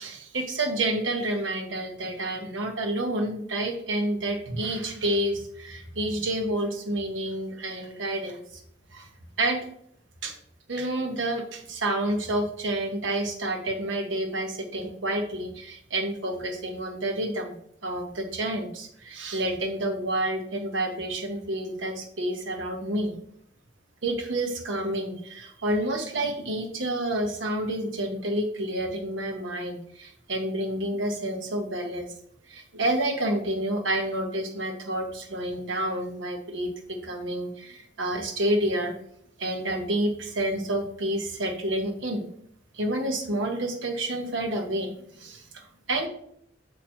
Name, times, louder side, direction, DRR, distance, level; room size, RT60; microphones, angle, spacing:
voice 1, 0.0-8.4 8.9-9.1 9.4-9.7 10.2-10.3 10.7-17.6 17.8-23.2 24.0-32.1 32.5-39.0 39.4-42.3 42.7-46.1, right 1 dB, 75° right, 4 dB, 1.0 m, -29 dB
7.2 x 3.0 x 4.4 m, 0.68 s
head